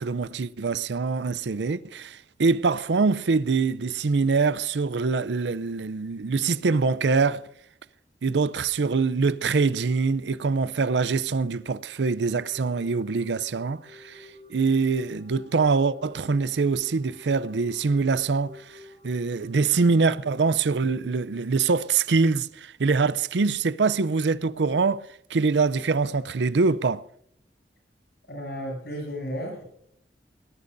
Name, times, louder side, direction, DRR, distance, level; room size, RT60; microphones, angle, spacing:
voice 1, 0.0-7.4 8.2-18.6 19.0-27.0, right 4 dB, 80° right, 0.5 m, -24 dB
sound 1, 12.2-20.0, left 2 dB, 40° left, 2.3 m, -50 dB
voice 2, 28.3-29.6, equal, 65° left, 7.8 m, -33 dB
21.5 x 19.0 x 2.6 m
head